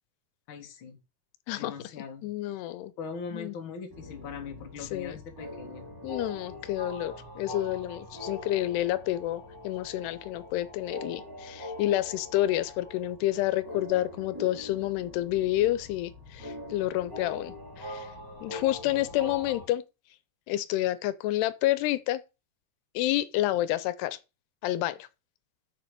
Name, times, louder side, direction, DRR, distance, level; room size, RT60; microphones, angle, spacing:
voice 1, 0.5-1.0 1.6-2.7 3.0-5.9 18.8-19.0, left 5 dB, 40° left, 1.9 m, -41 dB
voice 2, 2.2-2.9 3.3-3.6 4.8-5.2 6.0-18.1 18.4-19.8 20.5-22.2 22.9-24.2 24.6-25.1, left 14 dB, 85° left, 2.8 m, -29 dB
sound 1, 3.9-19.7, left 1 dB, 5° right, 2.2 m, -43 dB
7.0 x 6.9 x 6.7 m
omnidirectional pair, 4.6 m